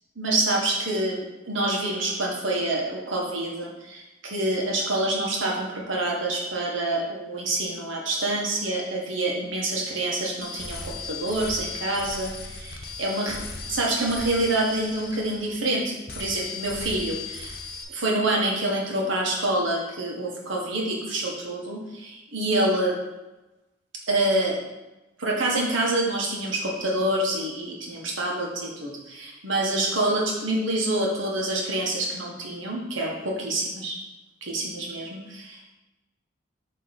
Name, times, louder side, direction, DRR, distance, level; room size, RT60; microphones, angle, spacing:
voice 1, 0.2-13.4 13.7-17.5 17.9-23.0 24.1-24.6 25.2-34.0 34.4-35.7, right 1 dB, 90° right, -2 dB, 1.4 m, -27 dB
sound 1, 10.4-15.8 16.1-17.8, left 4 dB, 50° left, 0.9 m, -37 dB
7.8 x 3.3 x 4.2 m, 1.0 s
head